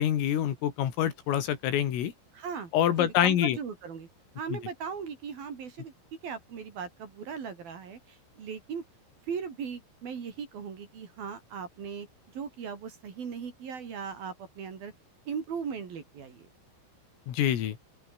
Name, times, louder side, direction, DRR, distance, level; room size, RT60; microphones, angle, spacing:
voice 1, 0.0-2.1 2.7-3.6 4.5-4.6 17.3-17.8, left 10 dB, 80° left, 5.2 m, -26 dB
voice 2, 2.3-2.7 3.0-4.1 4.4-8.8 9.3-12.1 12.3-14.9 15.3-16.5, right 6 dB, 50° right, 4.7 m, -38 dB
open air
omnidirectional pair, 5.9 m